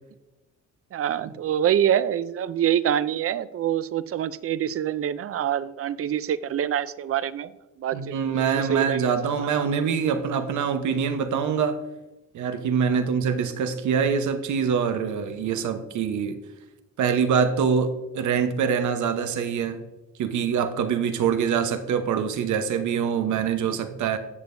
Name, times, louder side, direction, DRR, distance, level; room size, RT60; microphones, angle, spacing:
voice 1, 0.9-7.5 7.8-9.1 9.6-9.7, right 10 dB, 50° right, 16 dB, 0.5 m, -26 dB
voice 2, 7.9-11.8 12.3-16.4 17.0-19.8 20.2-24.2, right 7 dB, 75° right, 8 dB, 1.1 m, -24 dB
17.5 x 6.7 x 2.7 m, 1.0 s
cardioid pair, 90°, 30 cm